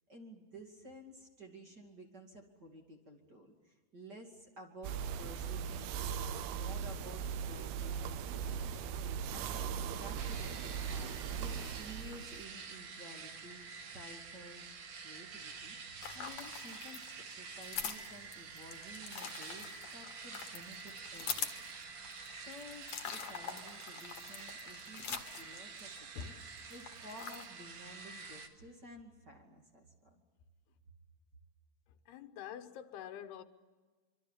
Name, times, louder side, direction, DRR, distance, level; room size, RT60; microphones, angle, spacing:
voice 1, 0.1-14.8 15.0-21.6 22.3-30.2, equal, 30° right, 2.4 m, -53 dB
sound 1, 4.8-12.4, right 7 dB, 80° right, 2.9 m, -39 dB
sound 2, 10.1-28.5, right 5 dB, 60° right, 3.2 m, -48 dB
sound 3, 16.0-26.2 26.6-27.5, left 7 dB, 50° left, 2.3 m, -44 dB
voice 2, 32.1-33.4, left 9 dB, 85° left, 3.2 m, -46 dB
25.5 x 25.0 x 7.4 m
omnidirectional pair, 4.5 m